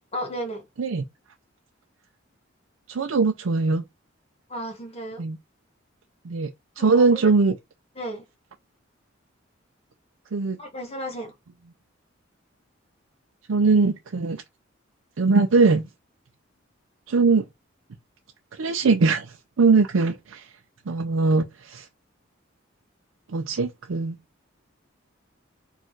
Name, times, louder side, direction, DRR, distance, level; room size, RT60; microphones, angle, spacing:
voice 1, 0.1-0.6 4.5-5.2 6.8-7.3 7.9-8.2 10.6-11.3, equal, 30° left, 1.4 m, -34 dB
voice 2, 2.9-3.8 5.2-5.4 6.3-6.5 6.8-7.6 10.3-10.6 13.5-14.4 15.2-15.8 17.1-17.4 18.6-20.4 20.9-21.9 23.3-24.2, right 4 dB, 85° right, 0.5 m, -21 dB
4.4 x 2.5 x 4.5 m
head